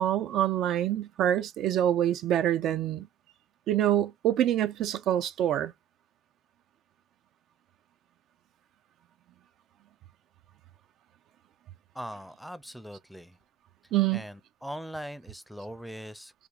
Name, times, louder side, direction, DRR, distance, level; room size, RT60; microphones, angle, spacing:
voice 1, 0.0-3.1 3.7-5.7 13.9-14.2, right 11 dB, 80° right, 0.4 m, -26 dB
voice 2, 11.9-13.4 14.1-16.3, equal, ahead, 0.5 m, -40 dB
3.5 x 2.4 x 3.1 m
cardioid pair, 90°, 0 cm